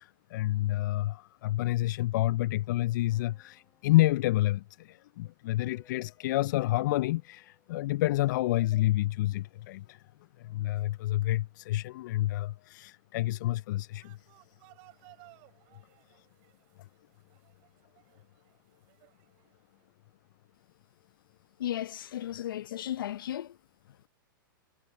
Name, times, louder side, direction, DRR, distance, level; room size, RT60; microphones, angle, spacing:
voice 1, 0.0-10.0 10.4-14.3 16.1-16.3 16.8-16.9, left 16 dB, 60° left, 0.4 m, -29 dB
sound 1, 3.1-4.9 5.6-8.2, left 8 dB, 20° left, 3.6 m, -66 dB
sound 2, 13.9-19.8, right 33 dB, 45° right, 4.9 m, -60 dB
voice 2, 21.6-23.6 23.9-24.0, left 12 dB, 75° left, 0.8 m, -35 dB
hypercardioid pair, 115°, 12 cm